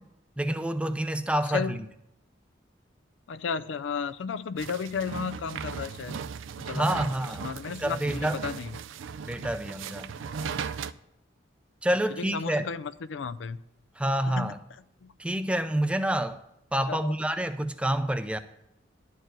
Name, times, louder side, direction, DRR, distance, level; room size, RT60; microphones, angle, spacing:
voice 1, 0.4-1.8 6.7-7.5 7.8-8.4 9.3-10.1 11.8-12.7 14.0-14.6 15.2-16.4 16.7-18.4, right 1 dB, 5° right, 0.4 m, -28 dB
voice 2, 1.5-1.8 3.3-6.2 6.6-7.1 7.4-8.7 12.1-13.6 14.3-14.5 15.0-15.1 16.9-17.1, left 6 dB, 75° left, 0.4 m, -34 dB
sound 1, 4.6-10.9, right 6 dB, 90° right, 0.4 m, -37 dB
11.5 x 4.7 x 7.6 m
head